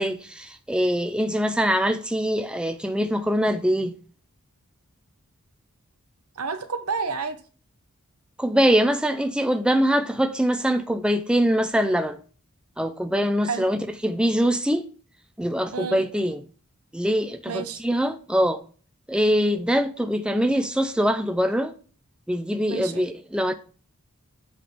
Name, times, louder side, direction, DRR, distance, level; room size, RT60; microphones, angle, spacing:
voice 1, 0.0-3.9 8.4-12.2 12.8-14.9 15.4-16.4 16.9-18.6 19.1-21.7 22.3-23.5, equal, 5° right, 0.5 m, -23 dB
voice 2, 6.4-7.4 13.4-13.7 15.7-16.0 17.5-17.8 22.7-23.0, right 5 dB, 80° right, 0.9 m, -30 dB
7.6 x 3.9 x 5.0 m
head